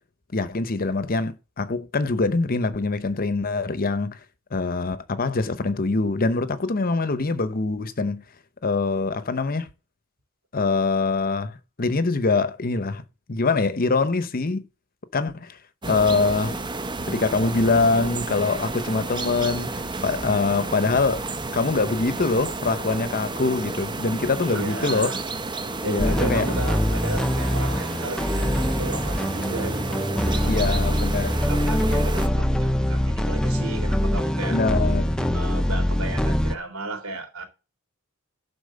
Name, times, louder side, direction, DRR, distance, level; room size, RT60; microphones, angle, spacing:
voice 1, 0.3-4.2 4.5-8.2 8.6-9.7 10.5-13.0 13.3-14.7 15.1-15.6 15.9-16.6 17.1-21.3 21.5-25.1 25.9-26.5 30.5-31.3 34.5-35.2, left 3 dB, 40° left, 0.8 m, -24 dB
sound 1, 15.8-32.3, right 3 dB, 20° right, 0.9 m, -31 dB
voice 2, 24.4-25.2 25.8-34.6 35.3-37.4, right 2 dB, 70° right, 3.6 m, -35 dB
sound 2, 26.0-36.5, equal, 5° left, 0.7 m, -23 dB
11.5 x 4.3 x 6.6 m
head